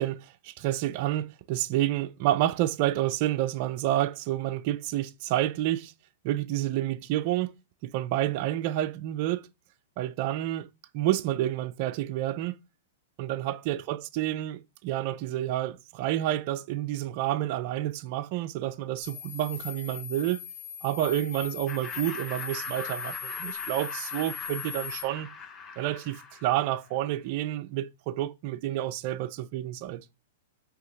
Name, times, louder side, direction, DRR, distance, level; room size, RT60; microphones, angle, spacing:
voice 1, 0.0-5.9 6.2-7.5 7.8-9.5 10.0-10.7 10.9-12.6 13.2-20.4 20.8-25.3 25.8-30.0, right 13 dB, 45° right, 0.4 m, -29 dB
sound 1, 19.0-25.0, left 8 dB, 55° left, 1.2 m, -39 dB
Laughter, 21.7-27.0, left 5 dB, 20° left, 0.6 m, -42 dB
3.7 x 2.8 x 3.7 m
figure-of-eight pair, 105°, 0 cm